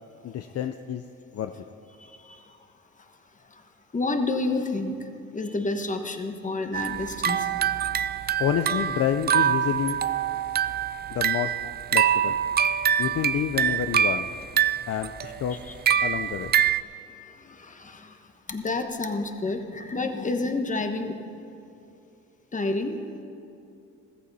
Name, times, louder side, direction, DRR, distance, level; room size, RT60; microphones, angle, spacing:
voice 1, 0.2-1.0 1.3-1.5 8.4-10.0 11.1-11.5 11.9-12.4 13.0-14.3 14.9-15.6 16.0-16.5, left 9 dB, 55° left, 7 dB, 0.5 m, -28 dB
voice 2, 2.0-2.6 3.5-3.6 3.9-7.5 15.5-15.7 17.2-21.2 22.5-23.0, left 3 dB, 25° left, 6 dB, 1.3 m, -30 dB
sound 1, 6.7-16.8, right 9 dB, 35° right, 0.4 m, -25 dB
15.0 x 14.0 x 4.1 m, 2.7 s
cardioid pair, 90°, 30 cm